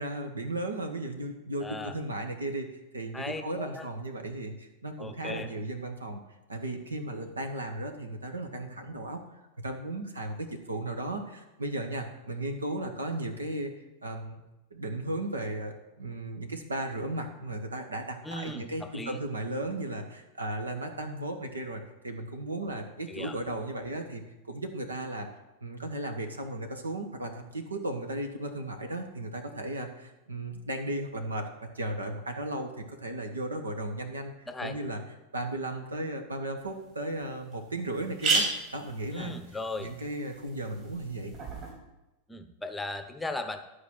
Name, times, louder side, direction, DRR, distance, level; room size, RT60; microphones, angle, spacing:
voice 1, 0.0-6.2 6.5-9.2 9.6-13.7 14.0-14.4 14.7-25.3 25.6-35.0 35.3-38.5 38.7-39.3 39.8-41.3, right 1 dB, 75° right, 5 dB, 1.3 m, -35 dB
voice 2, 1.6-1.9 3.1-3.9 5.0-5.5 18.2-19.2 23.1-23.4 34.5-34.7 39.1-39.9 42.3-43.6, left 2 dB, 10° left, 8 dB, 0.8 m, -37 dB
sound 1, 36.6-36.7 37.2-37.3 37.5-37.6 37.9-41.7, right 3 dB, 40° right, 3.9 m, -33 dB
11.0 x 4.9 x 7.5 m, 0.98 s
figure-of-eight pair, 90°, 0 cm